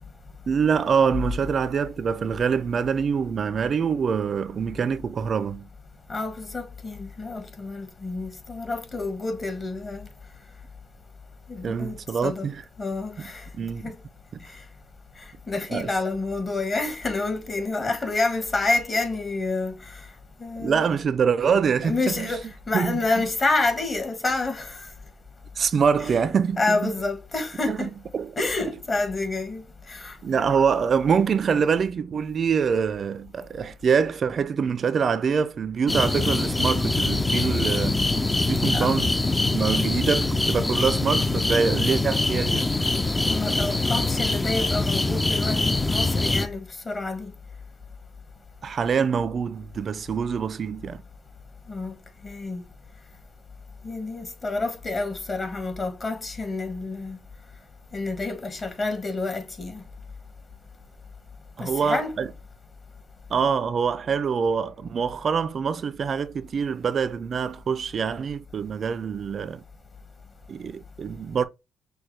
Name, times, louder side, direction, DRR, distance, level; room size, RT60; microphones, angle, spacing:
voice 1, 0.5-5.7 11.6-12.6 13.2-13.3 13.5-13.9 14.3-14.4 15.7-15.9 20.6-22.3 22.7-23.2 25.6-26.9 27.7-28.3 30.2-38.1 38.5-39.2 39.5-42.7 48.6-51.0 61.6-62.3 63.3-69.6 70.5-71.4, right 6 dB, 50° right, 0.4 m, -25 dB
voice 2, 6.1-10.1 11.5-12.0 12.2-12.5 12.8-13.4 13.8-13.9 15.5-19.8 20.4-20.8 21.8-24.9 26.0-26.1 26.6-27.9 28.4-29.6 29.9-30.2 30.6-30.7 38.7-38.9 43.3-46.6 46.8-47.3 51.7-51.9 52.2-52.6 53.8-57.2 57.9-59.8 61.6-62.1, left 3 dB, 35° left, 1.6 m, -28 dB
sound 1, 35.9-46.5, left 2 dB, 15° left, 0.4 m, -24 dB
6.2 x 2.2 x 3.2 m
cardioid pair, 90°, 0 cm